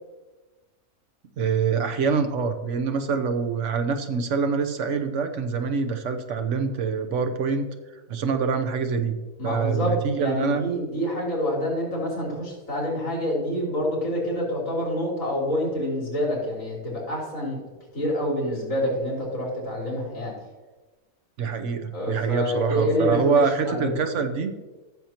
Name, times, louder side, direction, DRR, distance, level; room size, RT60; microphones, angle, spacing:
voice 1, 1.4-7.7 8.1-9.2 9.4-10.6 21.4-24.5, right 5 dB, 60° right, 7 dB, 1.1 m, -25 dB
voice 2, 9.4-9.9 10.2-17.6 17.9-20.3 21.9-23.9, left 1 dB, 65° left, -4 dB, 3.8 m, -27 dB
15.0 x 7.0 x 2.9 m, 1.2 s
omnidirectional pair, 1.5 m